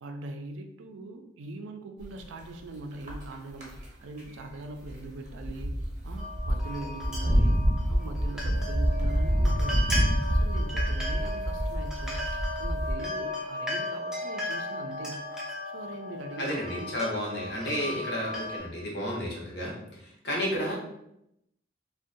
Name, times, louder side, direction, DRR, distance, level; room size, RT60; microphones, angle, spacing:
voice 1, 0.0-5.8 6.0-7.6 7.9-9.9 10.3-12.2 12.6-15.2 15.7-16.9 17.8-18.0, right 2 dB, 75° right, 5 dB, 0.3 m, -42 dB
sound 1, 2.0-2.5 2.9-3.3 3.6-3.9 4.2-4.3 4.8-5.0 5.3-13.0, equal, 40° right, 0.7 m, -27 dB
sound 2, 6.2-18.6, left 1 dB, 5° right, 0.4 m, -36 dB
voice 2, 16.4-20.7, equal, 55° left, -3 dB, 0.7 m, -32 dB
2.5 x 2.1 x 2.6 m, 0.81 s
head